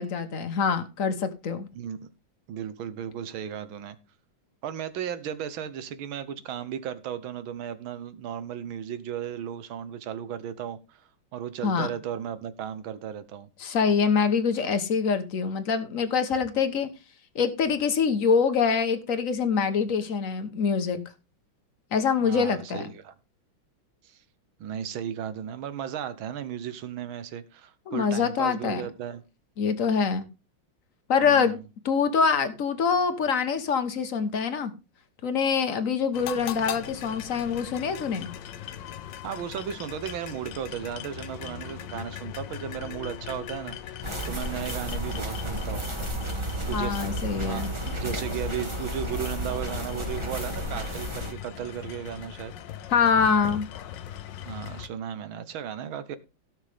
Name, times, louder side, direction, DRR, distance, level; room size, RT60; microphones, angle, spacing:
voice 1, 0.0-1.7 11.6-11.9 13.6-16.9 17.3-21.0 21.9-22.9 27.9-28.9 29.6-30.3 31.1-31.6 31.8-34.7 35.2-38.3 46.7-47.7 52.9-53.7, left 6 dB, 45° left, 1.3 m, -25 dB
voice 2, 1.8-2.1 2.5-4.0 4.6-13.5 22.2-23.1 24.0-24.2 24.6-29.2 31.2-31.6 39.2-43.8 44.3-45.9 46.7-52.5 54.4-56.2, right 9 dB, 80° right, 1.8 m, -35 dB
sound 1, 36.1-54.9, left 10 dB, 70° left, 1.3 m, -40 dB
sound 2, 44.0-51.3, equal, 15° right, 1.8 m, -32 dB
17.0 x 6.4 x 3.5 m
omnidirectional pair, 2.2 m